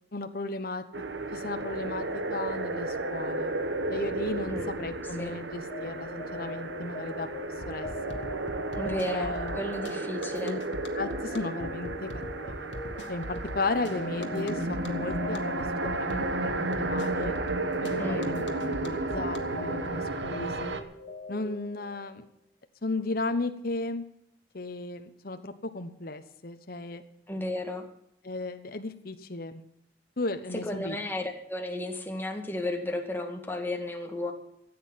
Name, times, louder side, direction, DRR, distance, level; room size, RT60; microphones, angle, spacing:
voice 1, 0.1-0.8 1.3-3.5 3.9-7.3 7.7-8.2 8.8-9.6 10.4-10.6 10.9-12.7 13.1-17.3 17.8-20.8 21.3-22.2 22.8-24.0 24.5-27.0 28.2-29.6 30.2-31.0, left 2 dB, 55° left, 8 dB, 1.0 m, -35 dB
sound 1, 0.9-20.8, right 2 dB, 85° right, 1.3 m, -33 dB
sound 2, 5.7-22.3, left 2 dB, 30° left, 3.7 m, -43 dB
sound 3, 7.6-19.4, left 1 dB, 85° left, 1.6 m, -41 dB
voice 2, 8.7-10.6 18.0-18.3 27.3-27.8 30.7-34.3, left 1 dB, 10° left, 3 dB, 2.0 m, -33 dB
14.5 x 8.7 x 7.3 m, 0.74 s
head